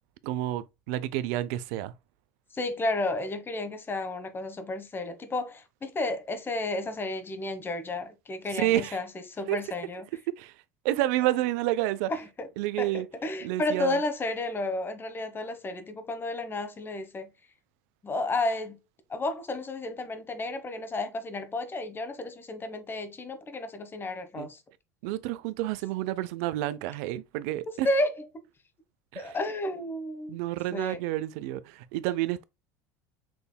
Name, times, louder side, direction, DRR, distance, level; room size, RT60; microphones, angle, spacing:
voice 1, 0.2-1.9 8.6-9.0 9.5-9.6 10.4-10.5 10.8-12.1 12.6-13.1 13.4-14.0 24.3-24.5 25.0-27.9 29.1-29.4 30.3-32.4, right 15 dB, 70° right, 0.5 m, -29 dB
voice 2, 2.5-10.1 12.1-12.5 12.8-17.3 18.0-18.8 19.1-24.6 27.7-28.2 29.2-30.4 30.7-31.0, left 2 dB, 25° left, 1.1 m, -32 dB
6.1 x 3.4 x 2.2 m
hypercardioid pair, 85°, 9 cm